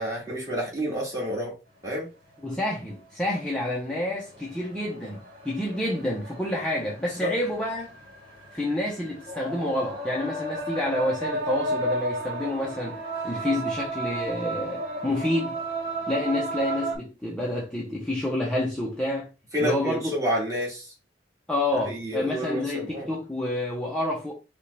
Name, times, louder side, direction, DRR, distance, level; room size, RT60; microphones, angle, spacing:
voice 1, 0.0-1.5 1.8-2.1 7.2-7.3 19.5-20.8 21.8-23.1, equal, 20° right, 2.2 m, -29 dB
voice 2, 2.4-5.2 5.4-7.9 8.5-15.6 16.1-19.3 19.6-20.1 21.5-24.3, left 1 dB, 5° left, 0.9 m, -28 dB
sound 1, 2.5-2.6 3.4-3.6 4.1-17.0, right 2 dB, 55° right, 1.8 m, -33 dB
5.4 x 2.5 x 3.4 m
head